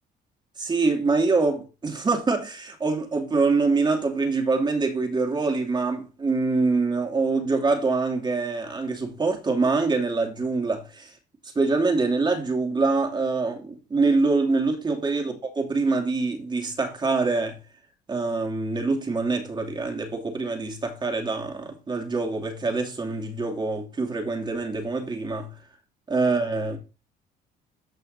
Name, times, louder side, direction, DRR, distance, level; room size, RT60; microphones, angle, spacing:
voice 1, 0.6-11.1 11.5-17.6 18.1-25.5 26.1-26.8, right 3 dB, 25° right, 2.7 m, -25 dB
14.0 x 5.7 x 2.7 m
cardioid pair, 110°, 17 cm